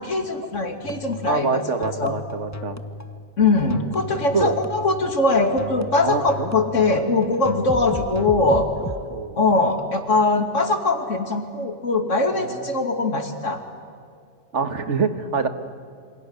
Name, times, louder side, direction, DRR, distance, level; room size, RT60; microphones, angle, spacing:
voice 1, 0.0-2.1 3.4-8.7 9.4-13.6, left 3 dB, 75° left, 6 dB, 3.0 m, -21 dB
sound 1, 0.8-9.0, left 2 dB, 15° left, 1.0 m, -35 dB
voice 2, 1.3-2.8 4.3-4.5 6.0-6.5 9.1-9.4 12.3-12.6 14.5-15.5, right 5 dB, 70° right, 9 dB, 1.9 m, -25 dB
28.0 x 25.5 x 8.2 m, 2.3 s
omnidirectional pair, 1.3 m